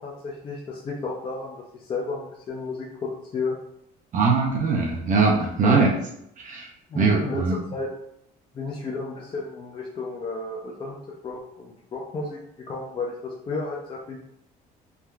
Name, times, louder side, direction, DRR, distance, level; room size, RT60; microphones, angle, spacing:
voice 1, 0.0-3.6 5.6-5.9 6.9-7.9 8.5-11.0 11.2-12.4 12.7-14.2, left 3 dB, 30° left, -2 dB, 0.4 m, -32 dB
voice 2, 4.1-5.9 6.4-6.7 6.9-7.6, right 4 dB, 50° right, -1 dB, 0.4 m, -21 dB
3.2 x 2.1 x 2.3 m, 0.76 s
cardioid pair, 110°, 17 cm